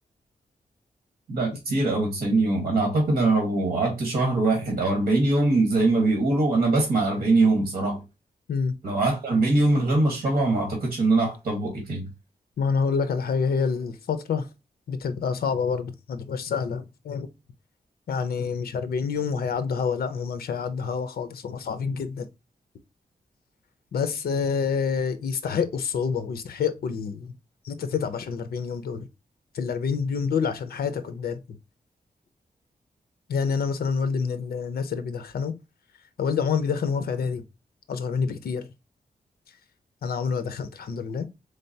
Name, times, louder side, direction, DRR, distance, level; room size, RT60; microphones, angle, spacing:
voice 1, 1.3-8.0 8.8-12.1, right 2 dB, 60° right, 1.3 m, -22 dB
voice 2, 12.6-14.5 14.9-17.3 18.1-22.3 23.9-27.3 27.6-29.1 29.5-31.4 33.3-35.5 36.2-37.5 37.9-38.7 40.0-41.3, left 6 dB, 80° left, 0.6 m, -27 dB
3.8 x 3.3 x 2.7 m
wide cardioid pair, 170°, 16 cm